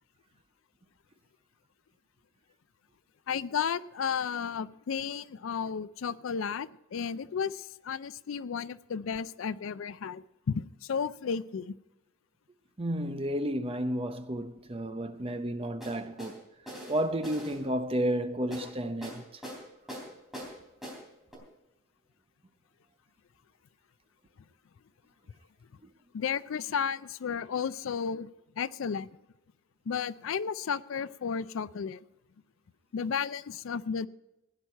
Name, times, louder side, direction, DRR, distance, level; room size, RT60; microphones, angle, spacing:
voice 1, 3.3-11.7 18.6-18.7 26.1-28.3 28.6-29.1 29.9-32.0 32.9-34.1, left 6 dB, 60° left, 0.4 m, -33 dB
voice 2, 12.8-16.4 16.9-19.2, right 1 dB, 25° right, 0.7 m, -32 dB
sound 1, 15.8-16.3 16.7-17.6 18.5-18.7 19.0-19.6 19.9-20.5 20.8-21.0 21.3-21.4, equal, ahead, 3.4 m, -42 dB
16.0 x 10.0 x 4.5 m
head